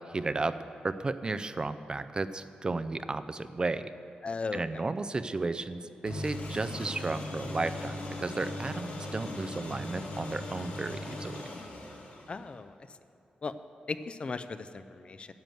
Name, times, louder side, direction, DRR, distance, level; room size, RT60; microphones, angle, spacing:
voice 1, 0.1-0.6 0.8-3.8 4.5-11.4, right 3 dB, 30° right, 12 dB, 0.4 m, -33 dB
voice 2, 4.2-4.6 12.3-12.8 13.4-13.5 13.9-15.3, left 4 dB, 40° left, 12 dB, 0.4 m, -36 dB
sound 1, 6.1-12.6, left 2 dB, 80° left, 1.8 m, -39 dB
10.5 x 7.6 x 7.7 m, 2.6 s
wide cardioid pair, 110°, 3 cm